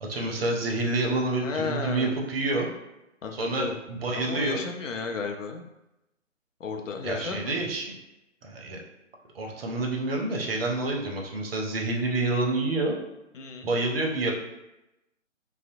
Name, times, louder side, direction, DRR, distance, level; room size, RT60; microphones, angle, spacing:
voice 1, 0.0-2.7 3.3-4.6 7.0-7.9 8.4-8.8 9.3-13.0 13.6-14.3, right 2 dB, 50° right, 1 dB, 0.6 m, -28 dB
voice 2, 1.4-2.2 3.2-3.8 4.2-5.6 6.6-7.6 13.3-13.7, left 5 dB, 75° left, 4 dB, 0.5 m, -33 dB
2.6 x 2.0 x 2.6 m, 0.93 s
figure-of-eight pair, 135°, 38 cm